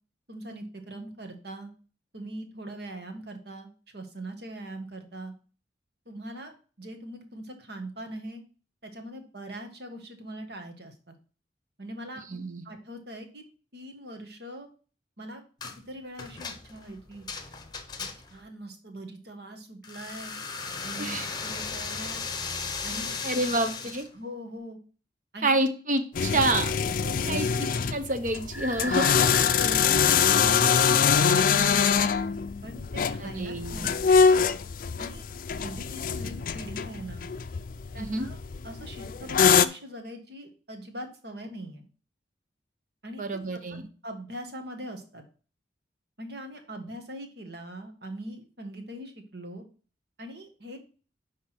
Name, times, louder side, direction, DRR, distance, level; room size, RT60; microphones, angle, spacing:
voice 1, 0.3-1.7 2.1-5.3 6.0-8.4 8.8-11.1 11.8-12.2 12.6-13.4 13.7-14.7 15.2-15.4 15.7-17.3 18.0-20.3 20.8-22.2 22.8-23.2 24.1-24.8 25.3-25.7 27.0-27.5 29.3-31.9 32.6-32.8 33.1-34.3 35.0-35.2 35.6-37.2 37.9-38.4 38.6-41.9 43.0-43.8 44.0-45.2 46.2-49.6 50.2-50.8, right 1 dB, 65° right, 5 dB, 1.6 m, -41 dB
voice 2, 12.3-12.6 21.0-21.3 23.2-24.1 25.4-26.7 27.3-29.1 33.2-33.9 38.0-38.3 43.2-43.8, right 2 dB, 45° right, 8 dB, 1.0 m, -28 dB
sound 1, 15.6-15.8 16.2-18.4 19.8-24.1, left 5 dB, 25° left, 0.9 m, -36 dB
sound 2, 26.1-39.7, left 6 dB, 50° left, 0.4 m, -24 dB
sound 3, 28.5-31.4, left 1 dB, 10° right, 0.6 m, -39 dB
10.5 x 3.7 x 6.0 m, 0.38 s
head